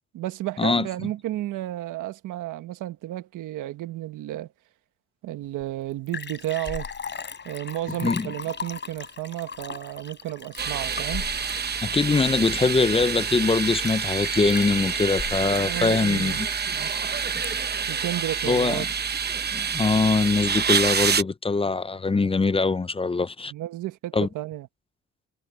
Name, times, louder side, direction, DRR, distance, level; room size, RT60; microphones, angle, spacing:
voice 1, 0.1-4.5 5.2-6.9 7.4-11.3 15.6-16.4 16.7-16.9 17.9-18.9 23.5-24.7, right 15 dB, 90° right, 1.4 m, -32 dB
Liquid, 5.6-5.7 5.9-17.8 18.3-18.4, left 5 dB, 35° left, 3.6 m, -38 dB
voice 2, 8.0-8.3 11.8-16.5 18.5-18.9 19.5-23.5 24.1-24.3, left 4 dB, 20° left, 0.6 m, -23 dB
sound 1, 10.6-21.2, right 6 dB, 35° right, 1.0 m, -27 dB
cardioid pair, 90°, 30 cm